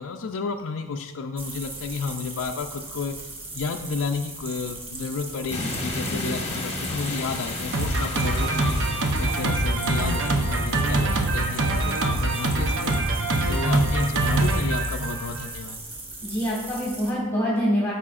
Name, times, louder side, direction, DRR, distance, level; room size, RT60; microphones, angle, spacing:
voice 1, 0.0-3.3 3.5-12.9 13.5-15.8, left 4 dB, 60° left, 4 dB, 0.4 m, -32 dB
sound 1, 1.4-17.1, right 2 dB, 25° right, 1.3 m, -38 dB
sound 2, 5.5-9.8, left 2 dB, 30° left, 1.0 m, -33 dB
Drum kit, 7.7-15.5, right 2 dB, 60° right, 0.8 m, -24 dB
voice 2, 16.2-17.9, equal, 10° left, -5 dB, 1.4 m, -25 dB
13.0 x 4.9 x 2.5 m, 1.1 s
head